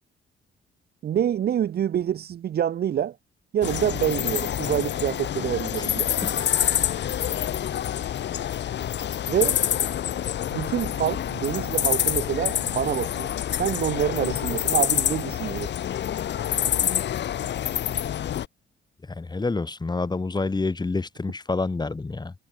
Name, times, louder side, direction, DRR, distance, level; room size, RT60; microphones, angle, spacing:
voice 1, 1.0-3.2 3.5-6.1 9.3-9.6 10.5-13.3 13.6-15.7, right 10 dB, 50° right, 0.7 m, -26 dB
sound 1, 3.6-18.5, left 10 dB, 60° left, 1.7 m, -27 dB
voice 2, 19.1-22.3, left 3 dB, 20° left, 2.4 m, -28 dB
cardioid pair, 90°, 20 cm